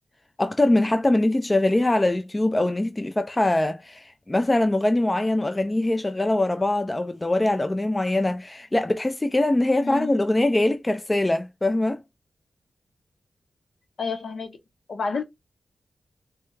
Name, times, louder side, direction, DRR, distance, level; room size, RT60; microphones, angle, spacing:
voice 1, 0.4-12.0, left 1 dB, 20° left, 0.4 m, -22 dB
voice 2, 9.8-10.1 14.0-14.6 14.9-15.2, left 4 dB, 65° left, 0.9 m, -29 dB
3.2 x 2.3 x 3.1 m
wide cardioid pair, 90°, 0 cm